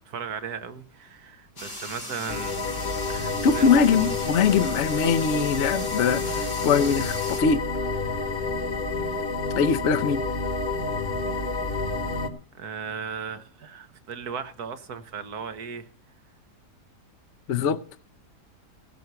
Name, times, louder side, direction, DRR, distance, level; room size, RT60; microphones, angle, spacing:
voice 1, 0.0-3.7 4.0-4.1 12.6-15.9, right 6 dB, 70° right, 1.8 m, -36 dB
sound 1, 1.6-7.4, left 2 dB, 85° left, 3.9 m, -38 dB
sound 2, 2.3-12.3, left 3 dB, 40° left, 1.3 m, -29 dB
voice 2, 3.4-7.6 9.5-10.2 17.5-17.8, left 6 dB, 55° left, 0.9 m, -22 dB
17.0 x 6.2 x 6.9 m
omnidirectional pair, 1.7 m